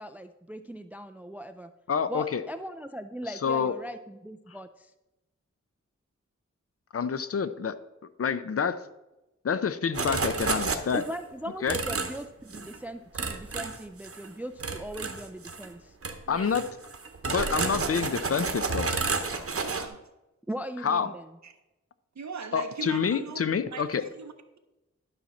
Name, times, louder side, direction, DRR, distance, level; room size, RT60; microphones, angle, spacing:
voice 1, 0.0-1.7 2.1-4.9 10.9-16.0 20.5-21.3, equal, 5° right, 10 dB, 0.3 m, -39 dB
voice 2, 1.9-2.4 3.4-3.7 6.9-7.8 8.2-8.8 9.4-11.0 11.6-11.8 16.3-16.7 17.2-18.9 20.8-21.1 22.5-24.0, left 6 dB, 55° left, 13 dB, 0.6 m, -27 dB
sound 1, 9.9-11.2 11.7-12.2 12.5-12.8 13.1-14.3 14.6-15.7 16.0-16.2 16.5-19.9, right 4 dB, 50° right, 0.9 m, -31 dB
voice 3, 16.3-16.6 19.5-20.0 21.4-21.5 22.2-23.4 23.7-24.6, right 5 dB, 70° right, 6 dB, 0.7 m, -40 dB
12.0 x 5.9 x 4.2 m, 0.99 s
wide cardioid pair, 90°, 29 cm